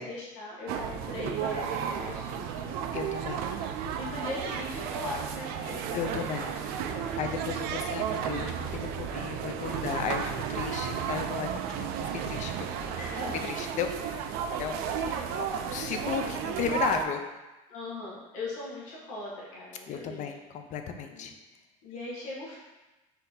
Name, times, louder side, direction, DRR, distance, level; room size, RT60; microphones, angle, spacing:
voice 1, 0.0-2.8 4.0-7.5 9.8-10.3 12.9-13.4 13.9-14.1 15.0-15.5 17.7-20.3 21.1-21.3 21.8-22.6, left 2 dB, 90° left, -6 dB, 1.3 m, -40 dB
sound 1, 0.7-17.1, right 8 dB, 70° right, 0.4 m, -33 dB
voice 2, 2.9-3.4 5.9-6.5 7.2-12.9 13.5-17.2 19.9-21.3, left 7 dB, 50° left, 6 dB, 0.5 m, -35 dB
4.1 x 2.7 x 4.0 m, 1.1 s
supercardioid pair, 115°, 16 cm